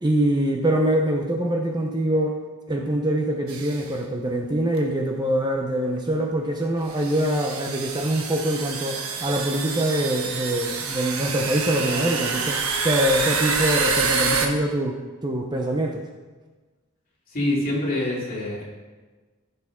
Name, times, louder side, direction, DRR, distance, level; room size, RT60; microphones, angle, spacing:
voice 1, 0.0-2.4 2.7-16.0, right 1 dB, 20° right, 1 dB, 0.7 m, -24 dB
sound 1, 3.5-3.8 4.8-4.9 6.0-6.1 6.9-14.5, right 4 dB, 75° right, 1.2 m, -27 dB
voice 2, 17.3-18.6, left 1 dB, 40° left, -5 dB, 2.9 m, -25 dB
14.5 x 6.8 x 3.6 m, 1.3 s
head